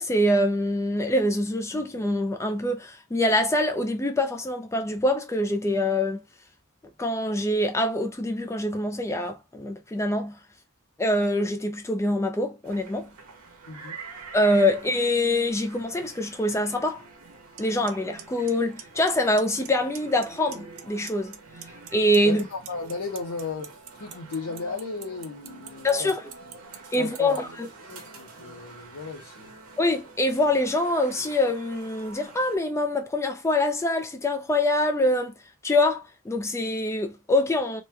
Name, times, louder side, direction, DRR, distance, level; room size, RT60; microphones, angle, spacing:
voice 1, 0.0-6.2 7.0-10.4 11.0-13.1 14.3-17.0 17.6-21.4 21.9-22.4 25.8-26.2 26.9-27.5 29.8-35.4 35.6-37.8, left 1 dB, 15° left, 0.4 m, -24 dB
sound 1, 12.6-32.6, right 3 dB, 90° right, 0.9 m, -46 dB
voice 2, 13.7-14.0 22.2-26.2 27.0-27.4 27.9-29.5, left 4 dB, 75° left, 0.7 m, -35 dB
Clock, 17.6-17.7 17.9-18.2 18.5-19.1 19.4-19.7 20.0-20.8 21.1-27.4, right 11 dB, 65° right, 0.5 m, -40 dB
3.1 x 2.2 x 3.2 m
head